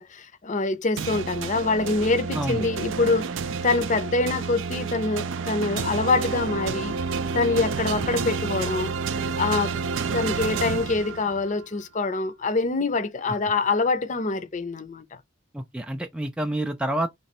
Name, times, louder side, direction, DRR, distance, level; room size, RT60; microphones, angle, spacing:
voice 1, 0.0-3.3 3.6-7.0 7.3-8.9 9.4-9.7 10.1-15.2, left 3 dB, 40° left, 0.6 m, -25 dB
sound 1, 1.0-11.6, right 5 dB, 75° right, 0.4 m, -29 dB
voice 2, 2.3-2.7 8.2-8.3 13.3-13.4 15.5-17.1, right 1 dB, 5° right, 0.3 m, -28 dB
3.2 x 3.1 x 4.2 m
head